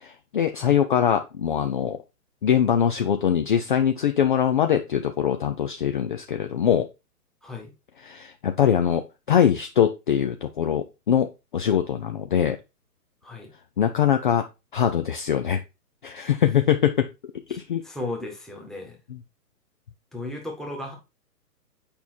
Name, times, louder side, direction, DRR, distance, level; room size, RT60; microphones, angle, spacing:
voice 1, 0.0-2.0 2.4-6.9 8.0-12.6 13.8-14.4 14.7-15.6 16.0-17.1 17.5-17.8 19.1-19.2, left 9 dB, 30° left, 7 dB, 0.6 m, -22 dB
voice 2, 17.8-19.0 20.1-20.9, left 2 dB, ahead, -1 dB, 1.4 m, -35 dB
8.9 x 5.5 x 4.4 m, 0.26 s
hypercardioid pair, 160°, 48 cm